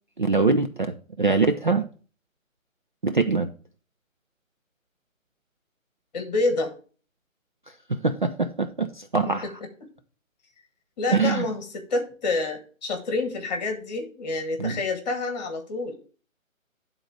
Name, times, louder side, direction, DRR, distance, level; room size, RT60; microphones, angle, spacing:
voice 1, 0.2-1.8 3.0-3.5 7.9-9.4 11.1-11.5 14.6-14.8, right 4 dB, 40° right, 0.4 m, -23 dB
voice 2, 6.1-6.7 9.3-9.9 11.0-16.0, left 3 dB, 30° left, 1.5 m, -28 dB
11.0 x 3.9 x 4.5 m
figure-of-eight pair, 140°, 41 cm